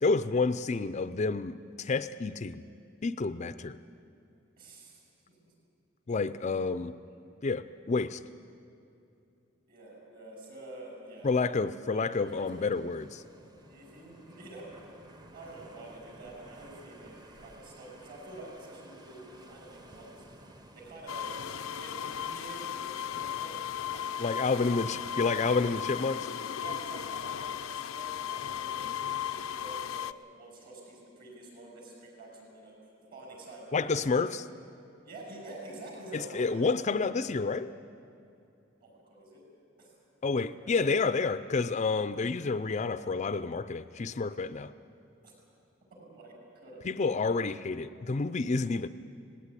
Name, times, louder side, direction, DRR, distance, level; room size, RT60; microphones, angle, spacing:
voice 1, 0.0-2.6 3.0-3.8 6.1-6.9 7.4-8.2 11.2-13.2 24.2-26.3 33.7-34.5 36.1-37.7 40.2-44.7 46.8-48.9, left 4 dB, 35° left, 13 dB, 0.4 m, -29 dB
voice 2, 4.6-5.0 5.3-5.5 9.7-11.3 11.9-12.9 13.7-14.7 15.3-20.2 20.7-21.3 21.6-23.6 23.9-24.8 25.6-25.7 26.5-30.1 30.4-32.8 33.1-34.3 35.0-36.7 38.8-39.4 39.8-39.9 40.6-40.8 45.2-45.3 45.9-46.8, right 2 dB, 50° right, -1 dB, 6.6 m, -48 dB
sound 1, 12.1-23.3, right 1 dB, 20° right, 1.0 m, -54 dB
sound 2, 21.1-30.1, left 9 dB, 85° left, 0.5 m, -36 dB
18.5 x 17.0 x 9.8 m, 2.7 s
head